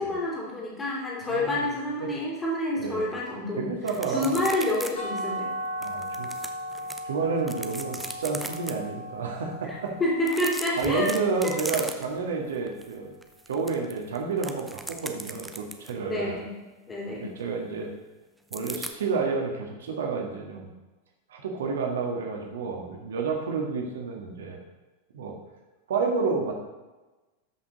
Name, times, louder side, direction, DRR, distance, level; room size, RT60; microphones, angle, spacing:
voice 1, 0.0-3.7 4.1-5.5 9.6-11.2 11.4-11.5 16.1-16.6 16.9-17.3, left 1 dB, 20° left, -6 dB, 3.0 m, -28 dB
voice 2, 1.2-1.7 2.0-2.1 2.8-3.0 3.5-4.4 5.8-6.3 7.0-9.9 10.8-13.1 13.5-16.3 17.2-17.9 18.5-20.7 21.3-24.6 25.1-25.4 25.9-26.5, right 4 dB, 60° right, 1 dB, 1.8 m, -30 dB
sound 1, 3.9-4.9 5.2-5.3 5.8-7.0 7.4-8.7 10.2-12.3 12.7-12.9 13.2-16.0 18.5-18.9, right 2 dB, 5° right, 0.8 m, -37 dB
sound 2, 5.0-10.8, equal, 55° left, 2.3 m, -36 dB
13.0 x 6.0 x 4.1 m, 1.2 s
figure-of-eight pair, 90°, 0 cm